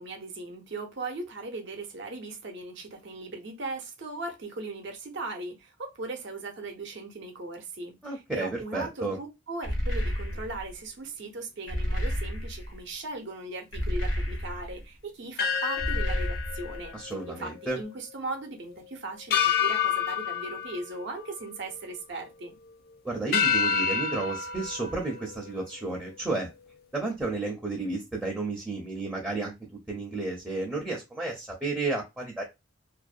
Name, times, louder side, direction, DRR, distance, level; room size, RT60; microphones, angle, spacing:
voice 1, 0.0-17.0 17.3-22.6, right 2 dB, 60° right, 0.6 m, -38 dB
voice 2, 8.0-9.2 16.9-17.8 23.0-26.5 26.9-32.4, right 3 dB, 5° right, 0.5 m, -32 dB
sound 1, 9.6-10.7 11.7-12.8 13.7-14.8 15.8-16.9, equal, 65° left, 0.7 m, -30 dB
sound 2, 15.4-17.9 18.2-18.3 19.3-21.8 22.3-22.7 23.3-26.1, left 7 dB, 50° left, 0.4 m, -29 dB
2.5 x 2.1 x 2.4 m
head